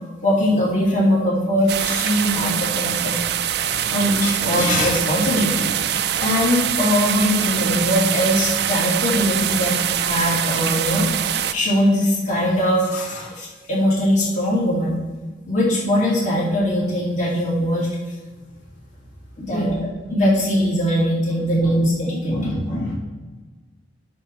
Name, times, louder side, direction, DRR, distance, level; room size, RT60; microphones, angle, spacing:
voice 1, 0.2-3.1 3.6-15.0 15.5-17.9 19.4-19.7 20.1-22.5, equal, 40° left, -5 dB, 2.8 m, -21 dB
sound 1, 1.7-11.5, right 9 dB, 60° right, 0.4 m, -23 dB
voice 2, 19.5-19.9 21.4-22.9, equal, 70° left, -5 dB, 2.1 m, -29 dB
10.5 x 6.2 x 4.6 m, 1.3 s
head